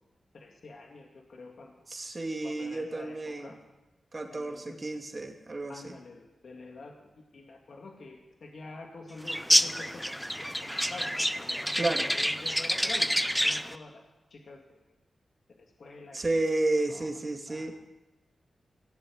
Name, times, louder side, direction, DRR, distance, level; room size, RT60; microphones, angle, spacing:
voice 1, 0.3-1.7 2.4-3.6 4.3-4.8 5.7-10.0 10.6-13.1 13.4-14.0 14.3-14.8 15.5-16.2 16.9-17.1 17.5-17.7, left 3 dB, 65° left, 2 dB, 2.1 m, -47 dB
voice 2, 1.9-3.5 4.1-6.0 11.8-12.1 16.1-17.7, right 2 dB, 40° right, 4 dB, 2.3 m, -31 dB
sound 1, 9.3-13.7, equal, ahead, 0.7 m, -28 dB
16.5 x 7.9 x 8.6 m, 1.0 s
cardioid pair, 50°, 0 cm